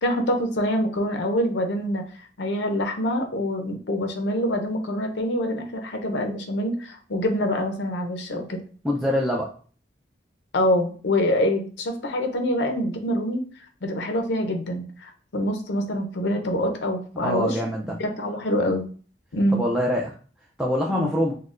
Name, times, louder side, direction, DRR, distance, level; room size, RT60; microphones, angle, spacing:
voice 1, 0.0-8.6 10.5-13.4 13.8-17.6 17.9-18.9 19.3-19.6 20.9-21.1, left 1 dB, 70° left, 4 dB, 0.6 m, -25 dB
voice 2, 8.8-9.5 17.2-17.9 19.5-20.1 20.6-21.3, equal, 5° right, -2 dB, 0.4 m, -24 dB
6.1 x 2.2 x 2.5 m, 0.41 s
head